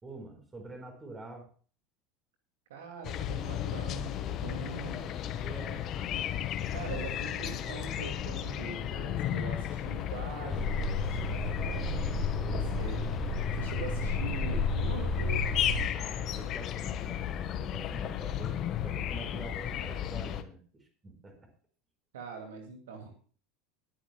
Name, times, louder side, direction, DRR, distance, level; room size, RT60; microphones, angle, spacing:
voice 1, 0.0-1.5 5.2-6.2 12.3-12.6 15.9-18.5 18.8-21.5, right 2 dB, 20° right, 5 dB, 5.2 m, -46 dB
voice 2, 2.7-5.1 6.7-11.9 12.5-13.1 13.5-15.5 22.1-23.1, right 5 dB, 65° right, 4 dB, 2.5 m, -43 dB
sound 1, 3.0-20.4, left 10 dB, 40° left, 1.5 m, -34 dB
sound 2, 10.5-15.9, left 2 dB, 10° left, 3.3 m, -32 dB
22.0 x 9.5 x 2.4 m, 0.40 s
figure-of-eight pair, 75°, 0 cm